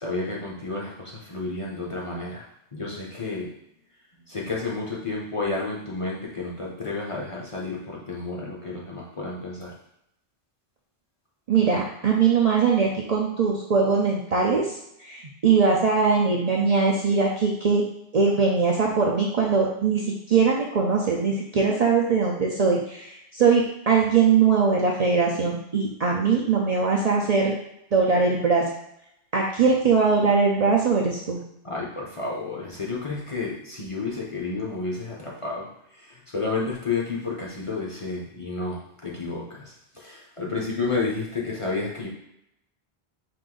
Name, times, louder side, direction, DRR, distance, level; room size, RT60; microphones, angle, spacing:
voice 1, 0.0-2.5 2.7-3.5 4.3-9.7 31.6-35.7 36.0-42.1, left 3 dB, 35° left, -3 dB, 0.8 m, -31 dB
voice 2, 11.5-14.7 15.0-17.9 18.1-27.5 27.9-28.6 29.3-31.4, right 5 dB, 50° right, -3 dB, 0.5 m, -21 dB
4.7 x 2.6 x 3.8 m, 0.79 s
omnidirectional pair, 1.1 m